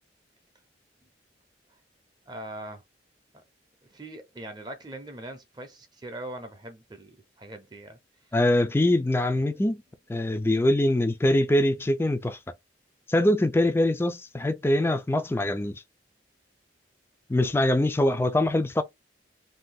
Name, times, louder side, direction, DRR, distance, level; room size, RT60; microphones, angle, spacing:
voice 1, 2.3-2.8 3.9-8.0 9.5-9.7, right 1 dB, 20° right, 0.6 m, -41 dB
voice 2, 8.3-9.8 10.1-12.4 13.1-15.8 17.3-18.8, left 1 dB, 15° left, 0.3 m, -23 dB
2.7 x 2.3 x 3.6 m
head